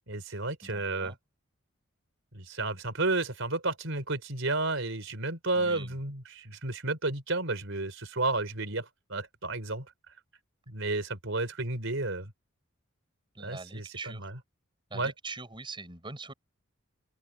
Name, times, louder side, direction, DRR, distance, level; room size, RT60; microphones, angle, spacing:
voice 1, 0.1-1.1 2.3-9.9 10.7-12.3 13.4-14.3 14.9-15.1, right 2 dB, 65° right, 4.9 m, -32 dB
voice 2, 0.6-1.2 5.6-6.0 13.3-14.3 14.9-16.3, right 3 dB, 25° right, 5.9 m, -43 dB
open air
head